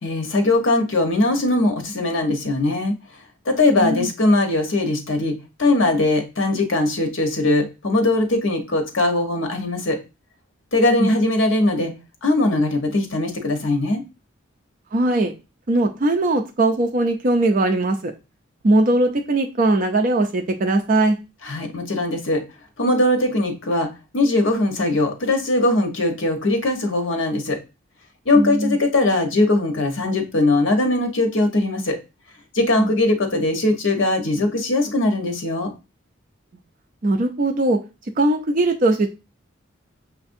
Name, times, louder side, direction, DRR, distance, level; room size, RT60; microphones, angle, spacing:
voice 1, 0.0-2.9 3.5-10.0 10.7-11.9 12.2-14.0 21.4-22.4 22.8-23.9 24.1-27.6 28.3-32.0 32.5-35.7, left 2 dB, 70° left, 4 dB, 1.0 m, -20 dB
voice 2, 3.8-4.1 11.0-11.1 14.9-15.3 15.7-18.1 18.6-21.2 28.4-28.8 32.8-32.9 37.0-37.8 38.2-39.1, right 2 dB, 40° right, 4 dB, 0.4 m, -19 dB
6.3 x 2.5 x 2.6 m, 0.28 s
head